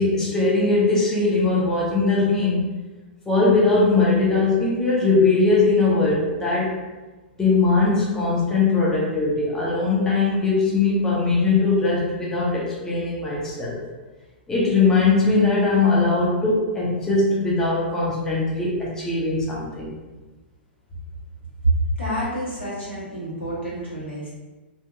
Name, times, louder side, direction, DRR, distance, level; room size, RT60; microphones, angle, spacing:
voice 1, 0.0-2.7 3.3-6.8 7.4-13.8 14.5-19.9, left 3 dB, 10° left, -6 dB, 0.6 m, -20 dB
voice 2, 21.6-24.3, right 2 dB, 90° left, -10 dB, 1.3 m, -26 dB
2.7 x 2.6 x 2.2 m, 1.2 s
figure-of-eight pair, 105°, 6 cm